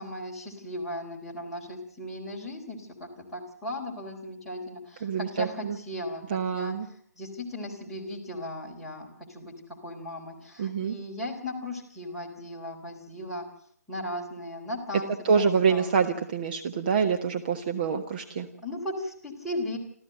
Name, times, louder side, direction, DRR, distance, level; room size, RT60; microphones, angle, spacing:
voice 1, 0.0-6.2 6.5-6.7 7.2-13.4 13.9-15.1 15.3-15.9 18.6-19.8, left 1 dB, ahead, -3 dB, 4.0 m, -37 dB
voice 2, 5.0-5.8 6.3-6.9 10.6-11.0 15.2-18.5, right 6 dB, 35° right, 5 dB, 1.3 m, -26 dB
26.5 x 14.5 x 7.8 m, 0.62 s
figure-of-eight pair, 140°, 9 cm